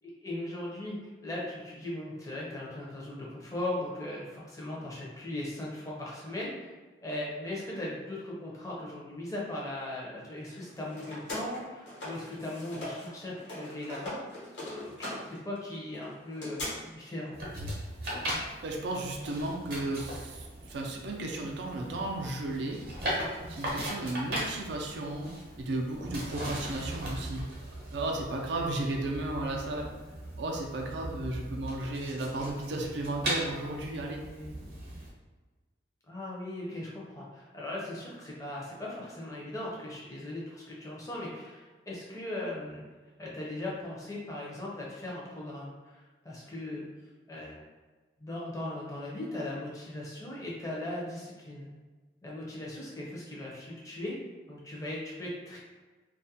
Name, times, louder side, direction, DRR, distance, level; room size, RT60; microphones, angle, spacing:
voice 1, 0.0-6.7 7.0-14.2 14.6-17.4 34.3-34.5 36.1-42.8 43.2-46.8 47.3-47.6 48.2-51.7 52.2-54.2 54.5-55.6, left 1 dB, 20° left, -5 dB, 0.5 m, -38 dB
sound 1, 10.5-13.1 13.4-16.7, left 1 dB, 75° left, 1.0 m, -41 dB
handling paper, 17.3-35.1, right 1 dB, 50° right, 0.8 m, -39 dB
voice 2, 18.6-22.8 23.5-25.3 25.6-27.5 27.9-29.9 30.4-34.2, right 2 dB, 70° right, 1 dB, 0.4 m, -34 dB
2.3 x 2.1 x 2.7 m, 1.3 s
head